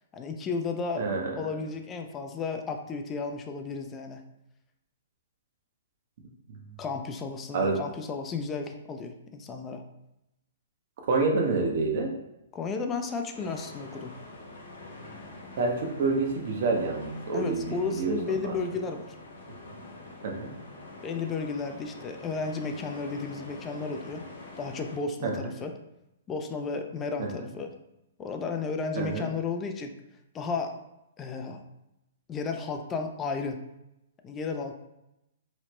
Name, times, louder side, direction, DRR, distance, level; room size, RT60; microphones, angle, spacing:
voice 1, 0.1-1.0 1.4-4.2 6.8-9.8 12.5-14.1 17.3-19.1 21.0-24.2 24.6-25.7 26.3-27.7 28.2-29.9 30.3-30.8 31.2-31.6 32.3-33.6 34.2-34.8, left 4 dB, 20° left, 5 dB, 0.3 m, -33 dB
voice 2, 1.0-1.3 6.5-6.7 7.5-7.8 11.1-12.1 15.6-18.6 20.2-20.5 25.2-25.5 27.2-27.3 28.9-29.3, right 3 dB, 60° right, 2 dB, 0.6 m, -28 dB
sound 1, 13.3-25.0, left 2 dB, 80° left, 0.9 m, -45 dB
3.0 x 2.0 x 3.0 m, 0.88 s
hypercardioid pair, 130°, 0 cm